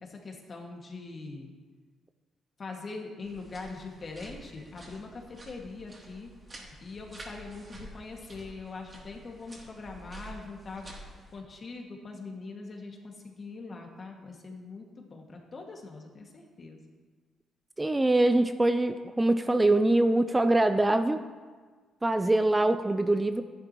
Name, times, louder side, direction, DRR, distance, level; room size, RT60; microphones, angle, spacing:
voice 1, 0.0-1.5 2.6-6.3 6.6-10.9 11.3-16.8, left 3 dB, 40° left, 1 dB, 1.9 m, -42 dB
sound 1, 3.2-11.4, right 1 dB, 30° right, 2.7 m, -49 dB
voice 2, 17.8-21.2 22.0-23.4, right 2 dB, 15° right, 9 dB, 0.4 m, -24 dB
12.5 x 10.5 x 3.0 m, 1.5 s
cardioid pair, 90°, 0 cm